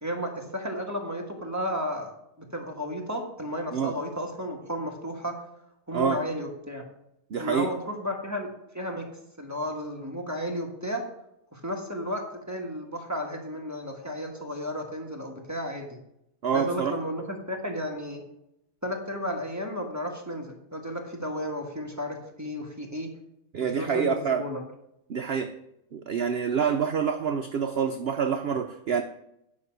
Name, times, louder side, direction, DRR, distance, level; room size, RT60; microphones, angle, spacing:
voice 1, 0.0-5.3 5.9-6.8 7.4-8.5 8.7-9.1 9.4-11.0 11.5-12.2 12.5-16.0 16.5-18.2 18.8-23.1 23.6-24.6, equal, 10° right, 1 dB, 1.4 m, -33 dB
voice 2, 7.3-7.7 16.4-17.0 23.5-24.4 25.1-25.5 25.9-29.0, right 7 dB, 60° right, 6 dB, 0.6 m, -27 dB
9.7 x 5.7 x 6.0 m, 0.80 s
omnidirectional pair, 1.7 m